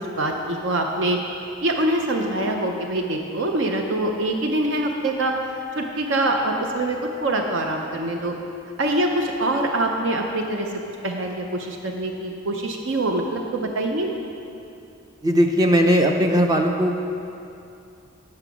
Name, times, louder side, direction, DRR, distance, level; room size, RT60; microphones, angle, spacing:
voice 1, 0.1-1.2 1.6-8.3 8.8-10.7 11.0-14.1, right 1 dB, 65° right, 3 dB, 0.6 m, -24 dB
voice 2, 15.2-17.0, equal, 20° right, 3 dB, 0.5 m, -18 dB
8.8 x 5.8 x 6.0 m, 2.6 s
head